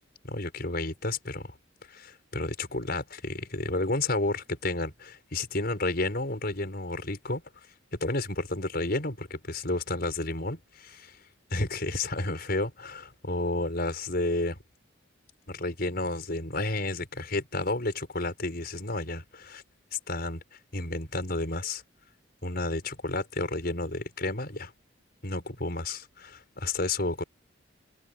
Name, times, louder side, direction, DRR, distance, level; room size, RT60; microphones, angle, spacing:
voice 1, 0.2-1.5 1.9-7.4 8.0-11.2 11.5-14.6 15.5-19.6 19.9-20.4 20.7-21.8 22.4-24.7 25.2-27.2, left 2 dB, 50° left, 5.5 m, -31 dB
head